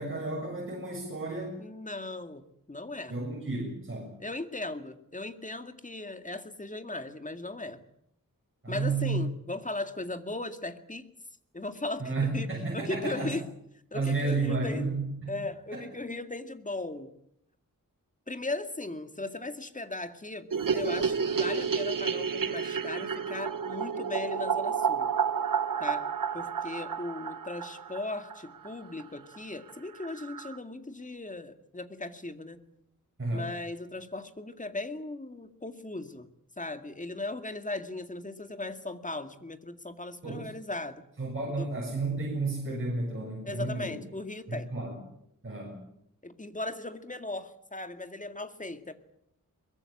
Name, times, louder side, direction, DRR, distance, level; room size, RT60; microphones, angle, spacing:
voice 1, 0.0-1.6 3.1-4.1 8.6-9.2 12.0-13.3 13.9-15.3 15.7-15.8 33.2-33.5 40.2-40.5 41.2-44.0 44.5-45.0 45.4-45.8, right 3 dB, 40° right, -2 dB, 7.1 m, -32 dB
voice 2, 1.6-3.1 4.2-7.8 8.7-11.1 11.5-13.5 13.9-14.9 15.3-17.1 18.3-25.1 25.8-26.1 26.3-32.6 33.3-36.3 36.6-41.0 41.5-41.7 43.4-44.7 46.2-48.9, left 2 dB, 25° left, 9 dB, 2.2 m, -38 dB
sound 1, 20.5-28.7 29.0-29.1 29.3-29.4 29.7-29.8 30.0-30.6, right 6 dB, 75° right, 1.6 m, -31 dB
23.0 x 21.5 x 8.7 m, 0.75 s
wide cardioid pair, 90°, 33 cm